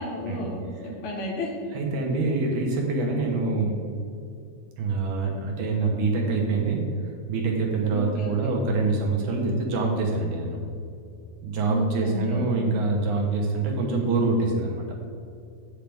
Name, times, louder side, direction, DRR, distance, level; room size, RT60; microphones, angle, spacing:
voice 1, 0.0-1.5 7.9-8.3 11.7-12.5, equal, 70° left, 0 dB, 2.5 m, -32 dB
voice 2, 1.7-3.8 4.8-6.8 7.3-10.6 11.4-14.8, right 3 dB, 75° right, 0 dB, 2.5 m, -25 dB
8.9 x 7.5 x 3.4 m, 2.5 s
omnidirectional pair, 3.6 m